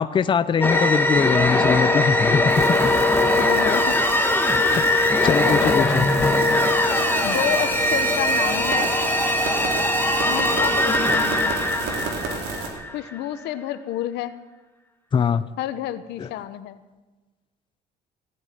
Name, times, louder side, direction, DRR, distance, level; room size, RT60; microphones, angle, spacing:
voice 1, 0.0-2.4 4.8-6.0 15.1-15.4 16.2-16.3, left 6 dB, 30° left, 13 dB, 0.6 m, -22 dB
sound 1, 0.6-13.1, left 1 dB, 10° left, 1.6 m, -21 dB
sound 2, 2.5-12.7, right 4 dB, 85° right, 3.5 m, -32 dB
voice 2, 3.4-4.0 4.7-4.8 5.2-5.9 7.2-8.9 10.2-11.6 12.9-14.3 15.6-16.8, left 12 dB, 85° left, 12 dB, 1.1 m, -29 dB
16.5 x 8.8 x 9.4 m, 1.2 s
cardioid pair, 110°, 17 cm